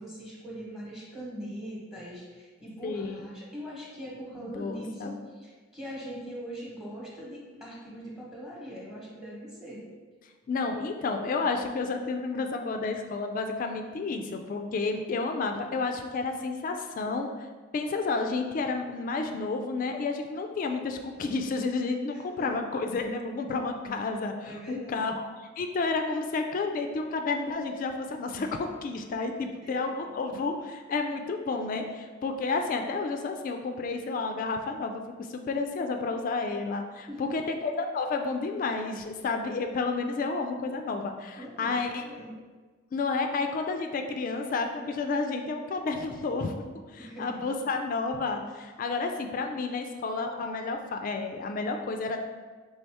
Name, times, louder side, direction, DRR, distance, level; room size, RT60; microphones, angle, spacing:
voice 1, 0.0-9.8 22.1-22.5 24.4-25.1 29.6-30.1 37.1-37.3 41.4-42.4 47.0-47.4, equal, ahead, -5 dB, 1.0 m, -41 dB
voice 2, 2.8-3.2 4.5-5.2 10.5-17.3 17.7-25.1 25.6-35.0 35.3-42.0 42.9-46.6 47.2-52.2, left 3 dB, 45° left, 5 dB, 0.3 m, -31 dB
4.1 x 3.3 x 3.4 m, 1.4 s
head